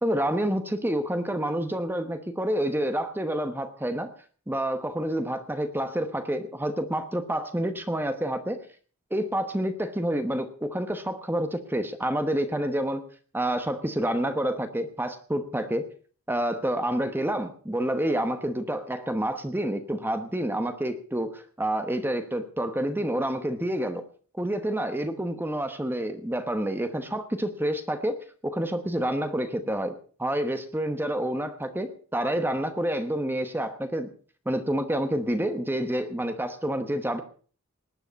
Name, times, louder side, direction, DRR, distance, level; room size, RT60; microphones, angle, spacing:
voice 1, 0.0-4.1 4.5-8.6 9.1-13.0 13.3-15.9 16.3-24.0 24.4-28.2 28.4-34.1 34.4-37.2, right 1 dB, 10° right, 8 dB, 1.1 m, -28 dB
19.0 x 10.0 x 5.3 m, 0.43 s
head